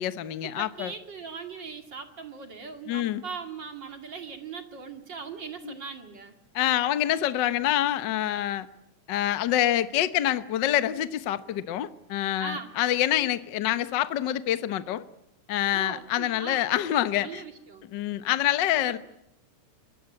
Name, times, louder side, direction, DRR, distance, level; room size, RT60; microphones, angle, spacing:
voice 1, 0.0-0.9 2.9-3.2 5.6-5.7 6.5-8.7 9.1-15.0 15.5-17.4 17.9-19.0, left 12 dB, 65° left, 13 dB, 1.1 m, -26 dB
voice 2, 0.6-6.4 12.4-12.8 15.7-16.7 17.2-17.9 18.8-19.0, right 5 dB, 40° right, 6 dB, 2.7 m, -40 dB
25.5 x 22.0 x 8.6 m, 0.81 s
omnidirectional pair, 3.5 m